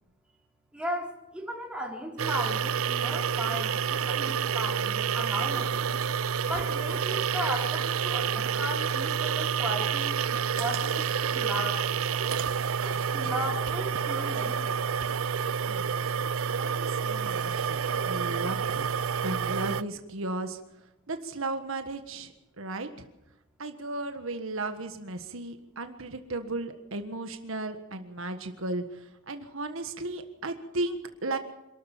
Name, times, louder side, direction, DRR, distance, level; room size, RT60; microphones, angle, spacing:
voice 1, 0.7-5.7 6.4-11.8 12.8-14.7, equal, 5° right, -1 dB, 4.7 m, -36 dB
sound 1, 2.2-19.8, right 7 dB, 85° right, 0.6 m, -29 dB
voice 2, 16.5-18.9 19.2-20.6 21.1-23.1 23.6-31.4, right 2 dB, 70° right, 7 dB, 1.6 m, -35 dB
27.0 x 13.5 x 7.2 m, 1.0 s
head